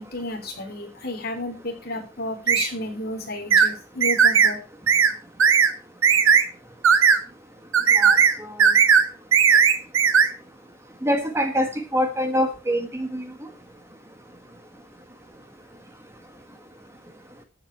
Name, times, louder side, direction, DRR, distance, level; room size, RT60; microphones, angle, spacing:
voice 1, 0.0-4.6, left 1 dB, 50° left, 4 dB, 3.5 m, -32 dB
sound 1, 2.5-2.7 3.5-3.7 4.0-4.5 4.9-5.1 5.4-5.7 6.0-6.4 6.8-7.2 7.7-8.3 8.6-9.0 9.3-10.3, right 7 dB, 85° right, 1.5 m, -16 dB
voice 2, 7.9-8.7 11.0-13.3, equal, 15° right, 7 dB, 1.4 m, -25 dB
14.5 x 7.7 x 4.6 m, 0.33 s
head